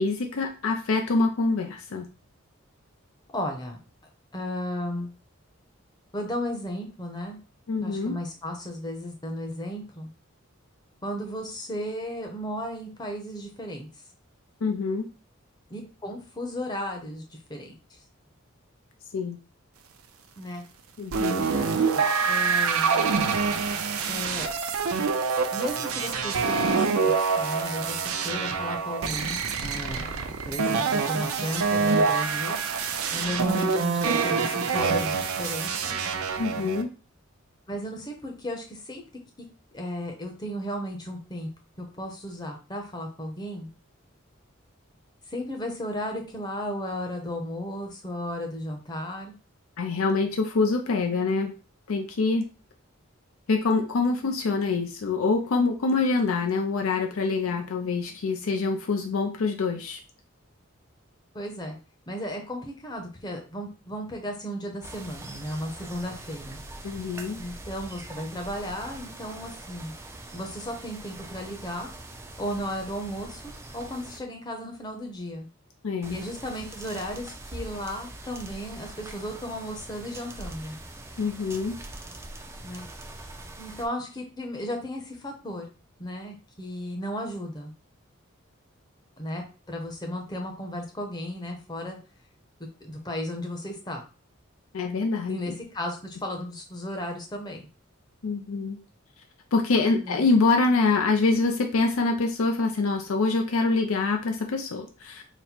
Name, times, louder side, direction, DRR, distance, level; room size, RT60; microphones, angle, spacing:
voice 1, 0.0-2.1 7.7-8.2 14.6-15.0 19.1-19.4 21.0-21.5 36.4-36.9 49.8-51.5 51.9-52.5 53.5-60.0 66.8-67.4 75.8-76.2 81.2-81.8 94.7-95.6 98.2-98.8 99.5-105.2, left 3 dB, 80° left, 3 dB, 0.5 m, -25 dB
voice 2, 3.3-3.8 4.3-5.1 6.1-7.4 7.8-10.1 11.0-13.9 15.7-17.8 20.4-20.6 21.5-23.1 24.1-24.5 25.5-32.6 33.1-36.0 36.5-36.7 37.7-39.0 39.7-41.5 41.8-43.7 45.3-49.3 61.3-61.8 62.1-66.6 67.4-69.9 70.3-71.9 72.4-73.4 73.7-75.5 76.1-80.8 82.6-82.9 83.6-85.7 86.0-87.7 89.2-92.0 92.8-94.0 95.3-97.7 100.0-100.2, left 1 dB, 20° left, 2 dB, 0.7 m, -34 dB
sound 1, 21.1-36.8, right 5 dB, 90° right, 0.5 m, -26 dB
sound 2, 64.8-74.2 76.0-83.9, right 2 dB, 10° right, 0.3 m, -43 dB
4.1 x 2.1 x 4.3 m, 0.34 s
head